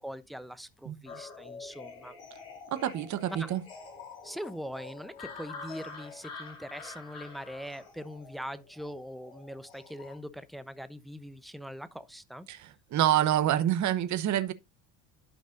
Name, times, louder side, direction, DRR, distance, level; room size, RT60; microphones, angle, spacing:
voice 1, 0.0-2.1 3.4-3.5 4.2-12.5, equal, ahead, 0.8 m, -42 dB
sound 1, 1.1-10.2, left 4 dB, 75° left, 4.3 m, -47 dB
voice 2, 2.7-3.6 12.5-14.5, right 11 dB, 45° right, 1.0 m, -27 dB
12.5 x 5.2 x 2.5 m
hypercardioid pair, 70°, 41 cm